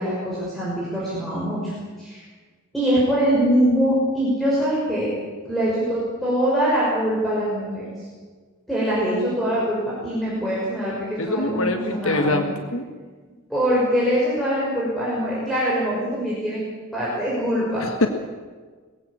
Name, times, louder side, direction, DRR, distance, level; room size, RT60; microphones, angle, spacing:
voice 1, 0.0-2.2 2.7-5.1 5.4-7.8 8.7-12.5 13.5-16.6 16.9-17.8, equal, ahead, -8 dB, 6.0 m, -23 dB
voice 2, 11.2-12.5 12.7-12.8 17.8-18.1, left 2 dB, 70° left, 6 dB, 1.5 m, -23 dB
21.5 x 15.5 x 8.7 m, 1.5 s
head